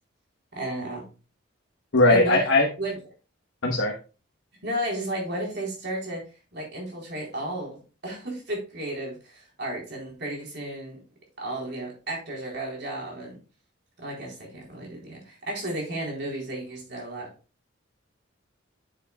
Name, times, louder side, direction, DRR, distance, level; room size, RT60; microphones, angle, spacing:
voice 1, 0.5-1.0 2.1-2.4 2.8-3.0 4.6-6.2 6.5-11.0 11.4-13.4 14.0-17.3, right 1 dB, 60° right, -1 dB, 3.8 m, -33 dB
voice 2, 1.9-2.7 3.6-3.9, left 2 dB, 85° left, -1 dB, 1.1 m, -19 dB
8.9 x 7.9 x 2.3 m, 0.33 s
head